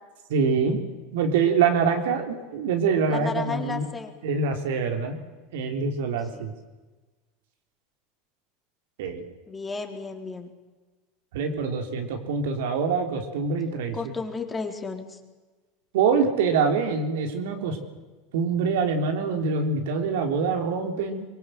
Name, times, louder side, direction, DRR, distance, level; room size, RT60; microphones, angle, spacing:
voice 1, 0.3-0.8 1.1-3.9 4.2-5.2 5.5-6.5 9.0-9.2 11.3-14.0 15.9-17.8 18.3-21.3, right 5 dB, 70° right, 4 dB, 3.7 m, -25 dB
voice 2, 3.1-4.2 6.3-6.4 9.5-10.5 13.9-15.2, left 4 dB, 20° left, 4 dB, 4.0 m, -33 dB
25.0 x 22.5 x 7.9 m, 1.2 s
hypercardioid pair, 85°, 0 cm